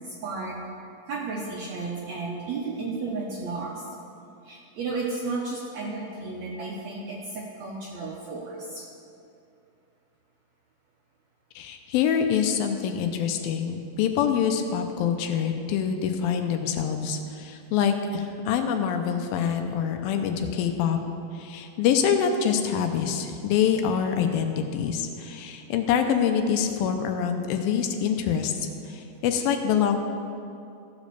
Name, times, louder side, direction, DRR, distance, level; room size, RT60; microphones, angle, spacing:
voice 1, 0.0-0.6 1.1-3.9 4.4-8.8, right 3 dB, 70° right, -3 dB, 1.8 m, -33 dB
voice 2, 11.6-21.0 21.3-28.5 28.9-30.0, left 7 dB, 85° left, 6 dB, 2.4 m, -25 dB
15.0 x 5.1 x 6.8 m, 2.6 s
omnidirectional pair, 4.3 m